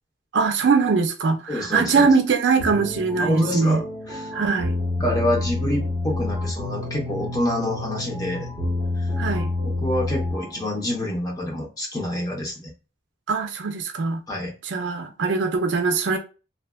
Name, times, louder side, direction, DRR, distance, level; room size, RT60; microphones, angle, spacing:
voice 1, 0.3-3.8 4.3-4.8 9.2-9.5 13.3-14.2 14.6-16.2, right 4 dB, 70° right, 0.5 m, -21 dB
voice 2, 1.5-2.1 3.2-4.3 5.0-8.5 9.8-12.7 14.3-14.5, left 1 dB, 20° left, 0.8 m, -27 dB
sound 1, 2.6-10.7, left 2 dB, ahead, 1.1 m, -28 dB
2.6 x 2.3 x 2.2 m
head